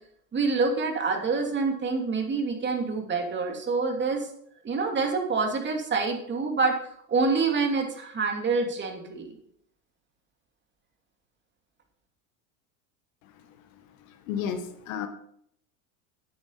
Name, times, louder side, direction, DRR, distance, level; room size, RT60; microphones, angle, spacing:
voice 1, 0.3-4.3 4.6-6.7 7.1-9.3, right 4 dB, 25° right, 2 dB, 2.8 m, -26 dB
voice 2, 14.0-15.1, left 8 dB, 75° left, 8 dB, 1.7 m, -33 dB
9.4 x 8.6 x 5.7 m, 0.69 s
hypercardioid pair, 100°, 41 cm